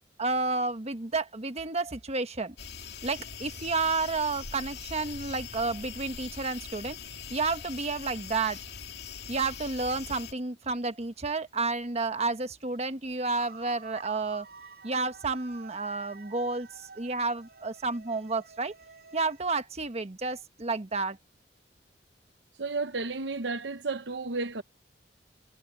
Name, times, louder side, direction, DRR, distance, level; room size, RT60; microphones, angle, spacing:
voice 1, 0.2-2.5 3.0-7.0 7.3-8.6 9.3-14.5 14.8-18.7 19.1-21.2, right 3 dB, 40° right, 1.2 m, -31 dB
sound 1, 2.6-10.3, left 6 dB, 65° left, 2.8 m, -42 dB
sound 2, 13.3-19.4, right 4 dB, 60° right, 6.2 m, -50 dB
voice 2, 22.6-24.6, right 3 dB, 80° right, 0.9 m, -32 dB
head